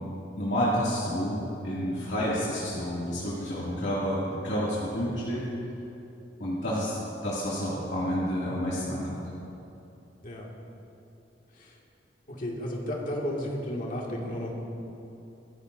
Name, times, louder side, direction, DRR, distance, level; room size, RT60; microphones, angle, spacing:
voice 1, 0.4-5.5 6.4-9.2, equal, 85° left, -8 dB, 2.4 m, -29 dB
voice 2, 12.4-14.5, equal, 50° left, -2 dB, 2.0 m, -33 dB
25.5 x 11.0 x 2.6 m, 2.9 s
head